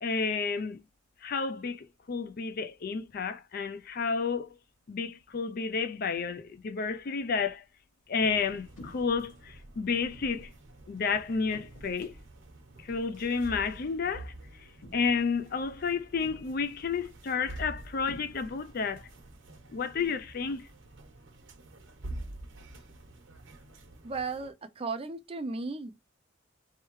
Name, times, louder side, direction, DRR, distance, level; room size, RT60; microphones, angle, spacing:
voice 1, 0.0-0.8 1.2-4.5 4.9-7.6 8.1-10.5 10.9-12.1 12.9-14.3 14.9-19.0 19.7-20.7, left 5 dB, 45° left, 0.4 m, -31 dB
sound 1, 8.2-24.5, right 2 dB, 70° right, 1.1 m, -48 dB
sound 2, 8.8-9.2 10.1-10.5 11.5-12.0 13.1-13.3 14.8-15.3 16.2-16.7 18.1-18.8, left 1 dB, 90° left, 1.3 m, -50 dB
voice 2, 24.0-25.9, right 4 dB, 30° right, 0.5 m, -35 dB
4.4 x 3.3 x 3.0 m
head